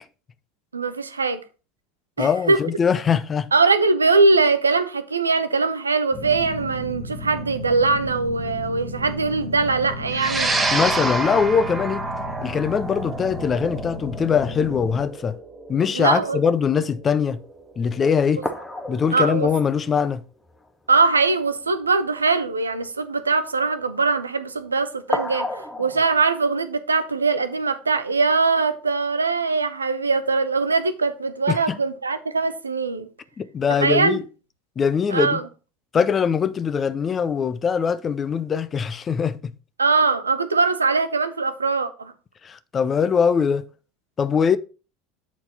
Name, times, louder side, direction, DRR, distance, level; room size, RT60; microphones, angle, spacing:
voice 1, 0.7-1.4 2.2-2.6 3.5-10.5 15.9-16.4 19.1-19.5 20.9-33.1 33.7-34.2 35.1-35.4 39.8-42.1, right 4 dB, 85° right, 0.6 m, -21 dB
voice 2, 2.2-3.5 10.7-12.0 12.4-15.4 15.7-17.4 17.8-18.5 18.9-20.2 31.5-31.7 33.4-34.2 34.8-35.4 35.9-39.5 42.4-43.6 44.2-44.6, left 6 dB, 30° left, 0.6 m, -22 dB
sound 1, 6.1-15.0, left 1 dB, 45° left, 1.6 m, -34 dB
sound 2, 10.1-18.7, right 3 dB, 20° right, 2.1 m, -28 dB
sound 3, 17.3-17.4 17.9-18.0 18.4-20.7 21.0-21.1 21.4-21.7 25.1-26.2, left 2 dB, 10° left, 1.1 m, -32 dB
8.3 x 4.4 x 4.1 m
figure-of-eight pair, 75°, 0 cm